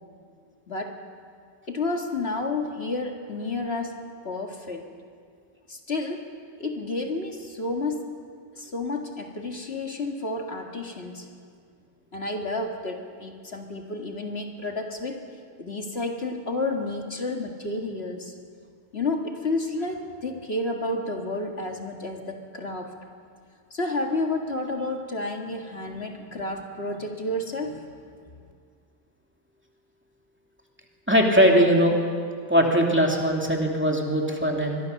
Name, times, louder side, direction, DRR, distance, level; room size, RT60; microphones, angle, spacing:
voice 1, 0.7-1.0 1.7-4.8 5.7-6.2 6.6-8.2 8.6-11.3 12.1-15.2 15.6-18.3 18.9-22.9 23.7-27.9, left 2 dB, 60° left, 2 dB, 2.2 m, -31 dB
voice 2, 31.1-32.0 32.5-34.8, equal, 10° right, 0 dB, 2.5 m, -20 dB
24.0 x 22.0 x 6.6 m, 2.1 s
omnidirectional pair, 1.2 m